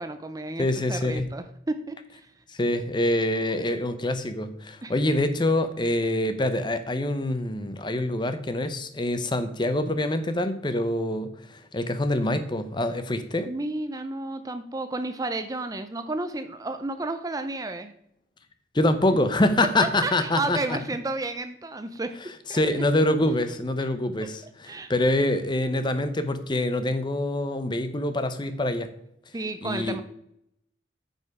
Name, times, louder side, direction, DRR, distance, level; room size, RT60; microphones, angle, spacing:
voice 1, 0.0-2.3 4.8-4.9 13.5-17.9 19.6-19.7 20.0-22.6 24.7-24.9 29.3-30.0, right 2 dB, 20° right, 9 dB, 0.4 m, -32 dB
voice 2, 0.6-1.3 2.5-13.5 18.7-20.8 22.5-28.9 29.6-30.0, left 1 dB, 25° left, 10 dB, 0.6 m, -25 dB
9.2 x 5.4 x 4.8 m, 0.75 s
head